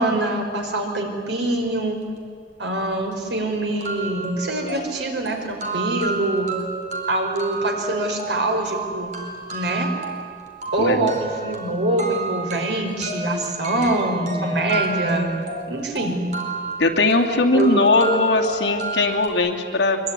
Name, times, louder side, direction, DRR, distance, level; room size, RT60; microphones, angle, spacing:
voice 1, 0.0-2.0 2.6-6.5 7.1-9.1 9.5-9.9 10.7-15.4 15.7-16.2 17.5-17.7, right 2 dB, 70° right, 3 dB, 4.9 m, -24 dB
sound 1, 2.8-2.9 3.3-3.4 3.8-19.3, right 3 dB, 45° right, 4.4 m, -31 dB
voice 2, 10.8-11.2 16.8-20.0, left 2 dB, 70° left, 2 dB, 2.7 m, -19 dB
24.0 x 23.5 x 9.8 m, 2.1 s
head